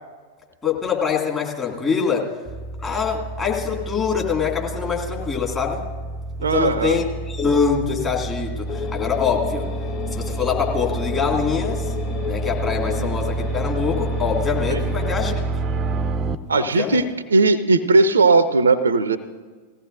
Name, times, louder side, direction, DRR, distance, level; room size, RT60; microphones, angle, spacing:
voice 1, 0.6-2.3 2.8-5.8 6.4-9.7 10.1-11.9 12.2-15.4 16.5-17.0, left 6 dB, 20° left, -1 dB, 2.2 m, -24 dB
sound 1, 2.5-16.3, right 3 dB, 25° right, 0.5 m, -28 dB
voice 2, 6.4-7.0 13.0-13.1 14.7-14.8 16.5-19.2, right 3 dB, 70° right, 15 dB, 0.5 m, -18 dB
sound 2, 8.7-15.1, left 6 dB, 50° left, 4.2 m, -32 dB
19.0 x 15.5 x 2.6 m, 1.5 s
figure-of-eight pair, 90°, 0 cm